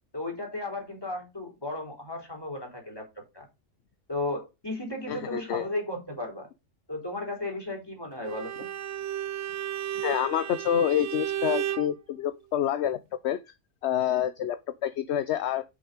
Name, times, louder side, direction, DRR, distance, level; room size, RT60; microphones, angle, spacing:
voice 1, 0.1-3.1 3.3-3.5 4.1-6.5 6.9-8.7, left 2 dB, 20° left, 3.6 m, -34 dB
voice 2, 5.1-5.7 10.0-13.0 13.2-13.4 13.8-15.6, left 10 dB, 65° left, 0.9 m, -27 dB
Bowed string instrument, 8.2-11.9, right 11 dB, 70° right, 1.0 m, -33 dB
8.0 x 6.1 x 5.0 m
omnidirectional pair, 1.3 m